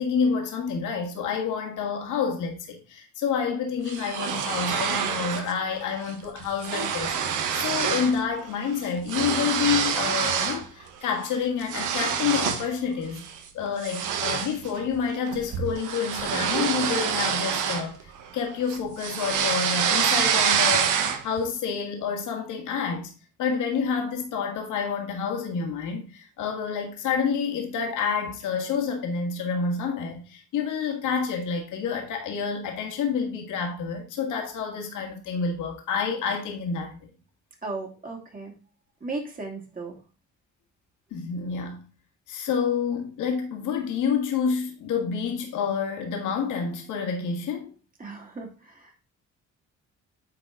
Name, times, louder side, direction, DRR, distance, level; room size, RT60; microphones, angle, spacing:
voice 1, 0.0-13.2 13.5-23.1 23.4-37.1 41.1-41.8 42.3-47.7, left 6 dB, 85° left, 1.9 m, -28 dB
sound 1, 3.9-5.5 5.9-6.1 6.4-8.2 8.5-10.6 11.1-12.7 13.2-13.4 13.8-18.4 18.7-21.4, right 7 dB, 90° right, 1.1 m, -26 dB
voice 2, 37.6-38.5 39.0-40.0 48.0-49.0, right 3 dB, 30° right, 2.7 m, -36 dB
9.5 x 4.2 x 3.8 m
cardioid pair, 90°, 30 cm